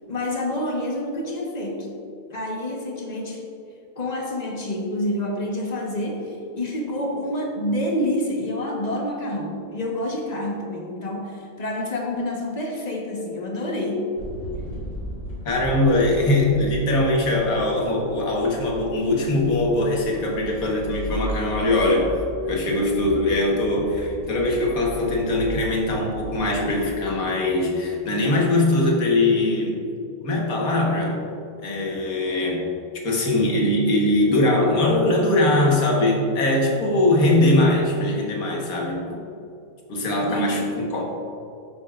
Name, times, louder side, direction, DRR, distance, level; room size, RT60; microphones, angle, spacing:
voice 1, 0.1-1.9 2.3-3.5 4.0-14.1 40.3-40.7, left 1 dB, 30° left, 0 dB, 1.1 m, -28 dB
sound 1, 14.2-26.9, right 1 dB, 60° left, 2.6 m, -36 dB
voice 2, 15.4-22.1 22.5-29.8 30.2-31.2 31.6-32.7 33.0-39.2 39.9-41.0, left 2 dB, 80° left, -1 dB, 1.8 m, -21 dB
11.0 x 8.3 x 2.4 m, 2.7 s
omnidirectional pair, 1.5 m